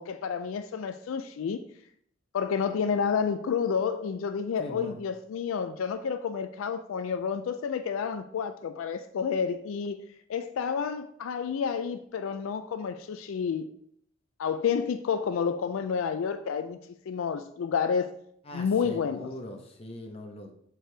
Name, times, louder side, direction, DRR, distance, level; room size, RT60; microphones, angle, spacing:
voice 1, 0.0-1.6 2.3-10.0 10.3-13.7 14.4-16.8 17.1-18.1 18.5-19.3, left 6 dB, 75° left, 0.3 m, -30 dB
voice 2, 4.6-4.9 18.4-20.5, left 1 dB, 30° left, 0.8 m, -41 dB
6.5 x 4.6 x 3.3 m
head